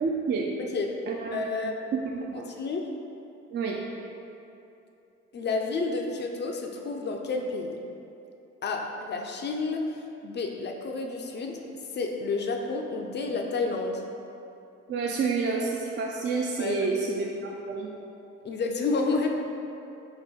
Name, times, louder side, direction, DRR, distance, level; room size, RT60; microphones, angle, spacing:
voice 1, 0.0-0.5 1.1-2.4 3.5-3.8 14.9-17.9, right 4 dB, 30° right, -1 dB, 0.4 m, -29 dB
voice 2, 0.6-0.9 1.3-1.7 2.3-2.9 5.3-7.8 8.6-9.8 10.2-11.6 11.9-14.0 16.6-16.9 18.4-19.4, left 3 dB, 30° left, 2 dB, 0.4 m, -30 dB
4.2 x 2.8 x 3.4 m, 2.8 s
figure-of-eight pair, 45°, 36 cm